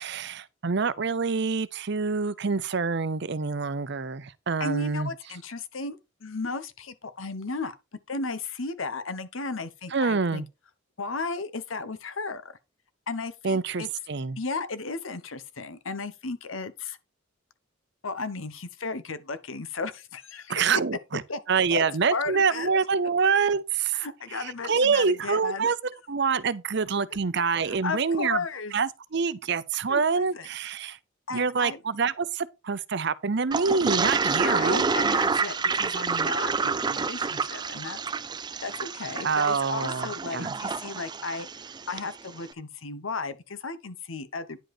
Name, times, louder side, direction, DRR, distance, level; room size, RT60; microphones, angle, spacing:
voice 1, 0.0-5.1 9.9-10.5 13.4-14.4 20.5-21.2 21.5-28.4 28.7-31.0 31.3-34.9 39.2-40.6, right 5 dB, 60° right, 0.7 m, -26 dB
voice 2, 4.6-7.7 8.1-10.4 11.0-12.5 13.1-13.9 14.4-17.0 18.0-20.5 21.3-21.4 21.7-21.8 22.1-22.7 23.9-25.7 27.6-28.7 29.9-30.5 31.3-31.8 34.1-38.0 38.6-41.5 41.9-44.6, left 3 dB, 80° left, 1.1 m, -34 dB
Toilet flush, 33.5-42.1, right 5 dB, 20° right, 0.4 m, -28 dB
10.0 x 5.2 x 4.4 m
head